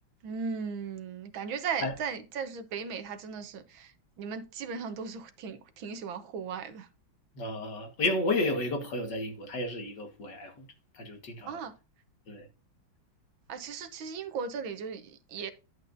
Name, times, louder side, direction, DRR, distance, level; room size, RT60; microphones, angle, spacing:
voice 1, 0.2-6.9 11.5-11.7 13.5-15.5, right 6 dB, 75° right, 1.7 m, -37 dB
voice 2, 7.4-10.7 10.9-11.6 12.3-12.5, left 2 dB, 60° left, 2.2 m, -32 dB
10.5 x 8.1 x 2.6 m
omnidirectional pair, 2.2 m